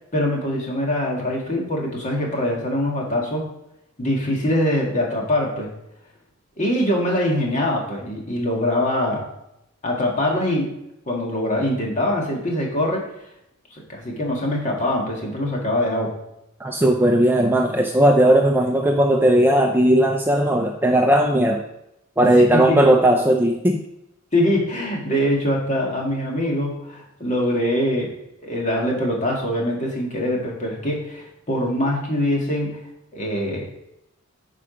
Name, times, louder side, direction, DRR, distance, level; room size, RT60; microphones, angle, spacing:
voice 1, 0.1-3.5 4.0-5.7 6.6-9.3 9.8-10.7 11.1-13.1 13.7-16.2 22.5-22.8 24.3-28.1 28.4-32.8 33.1-33.7, left 1 dB, 35° left, -1 dB, 1.9 m, -23 dB
voice 2, 16.6-21.6 22.2-23.8, right 1 dB, 10° right, 2 dB, 0.5 m, -17 dB
8.9 x 5.0 x 5.1 m, 0.84 s
head